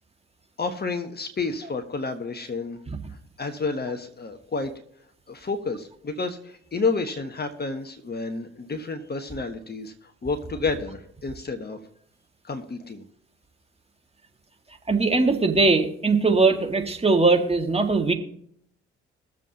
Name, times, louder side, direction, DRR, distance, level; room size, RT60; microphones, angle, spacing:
voice 1, 0.6-2.8 3.4-4.7 5.3-9.9 10.2-11.8 12.4-13.0, left 4 dB, 30° left, 6 dB, 1.4 m, -30 dB
voice 2, 14.9-18.1, right 3 dB, 20° right, 3 dB, 2.0 m, -20 dB
22.0 x 7.4 x 2.9 m, 0.69 s
hypercardioid pair, 45°, 32 cm